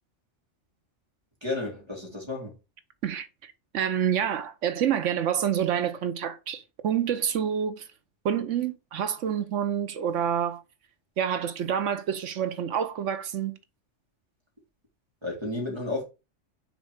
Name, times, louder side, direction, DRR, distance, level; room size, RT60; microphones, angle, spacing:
voice 1, 1.4-2.5 15.2-16.0, left 2 dB, 20° right, 2.4 m, -32 dB
voice 2, 3.0-7.9 8.2-10.6 11.2-13.6, right 9 dB, 80° right, 1.1 m, -28 dB
6.4 x 3.8 x 4.9 m
omnidirectional pair, 1.3 m